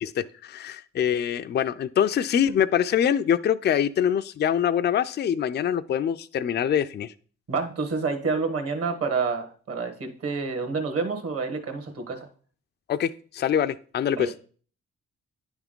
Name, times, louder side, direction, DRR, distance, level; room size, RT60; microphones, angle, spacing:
voice 1, 0.0-7.1 12.9-14.3, left 9 dB, 35° left, 12 dB, 0.4 m, -24 dB
voice 2, 7.5-12.3 14.2-14.4, right 4 dB, 50° right, 6 dB, 1.4 m, -28 dB
9.7 x 3.5 x 3.7 m, 0.43 s
supercardioid pair, 65°, 31 cm